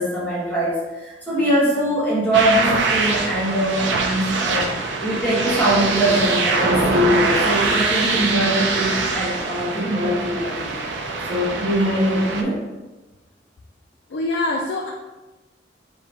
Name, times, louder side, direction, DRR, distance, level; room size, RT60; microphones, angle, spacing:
voice 1, 0.0-4.7 5.0-10.7 11.3-12.6, equal, 10° left, -8 dB, 1.0 m, -22 dB
sound 1, 2.3-12.4, right 3 dB, 90° right, 0.5 m, -23 dB
voice 2, 14.1-14.9, left 2 dB, 75° left, -1 dB, 0.4 m, -24 dB
4.6 x 2.7 x 3.4 m, 1.1 s
head